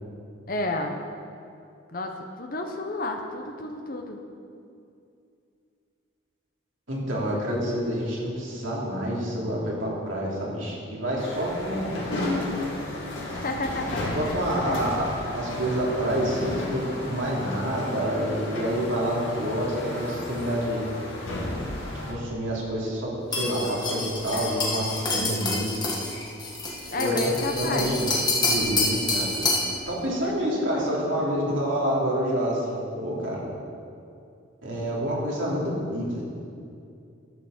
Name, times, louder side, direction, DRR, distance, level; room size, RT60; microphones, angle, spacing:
voice 1, 0.5-0.9 1.9-4.2 13.2-14.9 26.9-28.0 30.2-31.4, left 2 dB, 45° left, 3 dB, 0.8 m, -32 dB
voice 2, 6.9-12.0 14.1-16.8 17.1-20.9 22.1-25.7 27.0-27.2 27.6-28.1 28.5-29.4 29.9-33.4 34.6-36.2, equal, 70° right, -4 dB, 3.0 m, -28 dB
sound 1, 11.2-22.1, left 1 dB, 70° left, 2.2 m, -33 dB
sound 2, 23.3-29.7, left 2 dB, 20° left, 1.6 m, -27 dB
12.5 x 6.6 x 6.6 m, 2.5 s
head